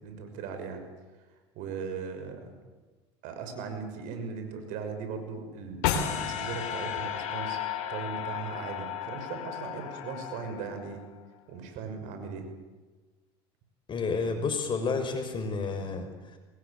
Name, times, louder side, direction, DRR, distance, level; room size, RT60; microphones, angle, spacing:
voice 1, 0.0-0.8 1.5-2.6 3.2-7.6 7.9-11.0 11.5-12.5, right 5 dB, 65° right, 7 dB, 6.3 m, -38 dB
sound 1, 5.8-11.0, left 9 dB, 65° left, 4.0 m, -33 dB
voice 2, 13.9-16.1, left 4 dB, 35° left, 6 dB, 6.0 m, -30 dB
24.5 x 21.0 x 8.7 m, 1.3 s
hypercardioid pair, 85°, 14 cm